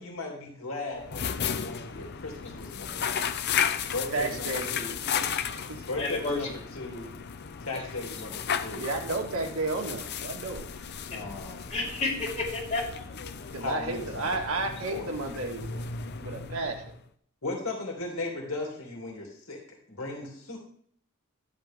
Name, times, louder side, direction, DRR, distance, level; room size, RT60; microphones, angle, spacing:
voice 1, 0.0-3.3 3.9-4.9 5.9-7.1 7.6-8.9 11.1-11.8 13.5-14.3 14.9-15.1 17.4-20.6, left 2 dB, 70° left, -1 dB, 2.9 m, -37 dB
sound 1, 0.9-17.1, left 7 dB, 50° left, 0.7 m, -34 dB
voice 2, 4.1-4.7 5.4-5.8 8.7-10.6 13.5-15.8 16.2-16.8, right 3 dB, 80° right, 2 dB, 2.1 m, -32 dB
voice 3, 6.0-6.4 11.1-11.2 11.7-13.0, left 3 dB, 30° left, -5 dB, 5.7 m, -30 dB
13.5 x 10.5 x 3.7 m, 0.63 s
head